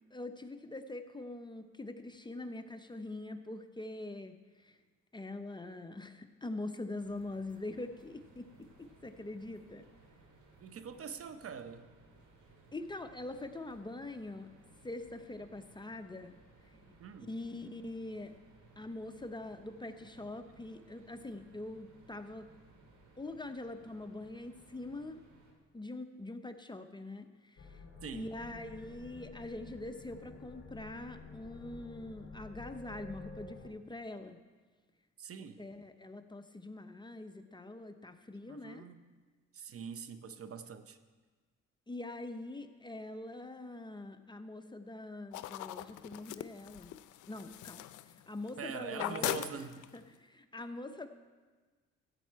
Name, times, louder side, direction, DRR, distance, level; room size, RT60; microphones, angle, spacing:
voice 1, 0.1-4.8 5.1-9.9 12.7-14.5 14.8-16.4 16.7-16.8 17.2-18.3 18.8-22.5 23.2-25.2 25.7-27.8 28.1-34.4 35.4-38.8 41.9-46.9 47.3-49.5 49.9-51.1, left 2 dB, 15° left, 8 dB, 0.7 m, -44 dB
sound 1, 7.0-25.5, right 3 dB, 70° right, 2.4 m, -62 dB
voice 2, 10.6-11.9 17.0-17.3 28.0-28.3 35.2-35.6 38.5-39.0 39.5-41.0 48.6-49.8, right 6 dB, 50° right, 10 dB, 0.7 m, -44 dB
sound 2, 27.6-33.7, left 3 dB, 45° left, 2.3 m, -51 dB
sound 3, 45.3-48.6 48.9-50.1, left 14 dB, 80° left, 0.5 m, -40 dB
14.0 x 8.4 x 4.6 m, 1.4 s
cardioid pair, 90°, 30 cm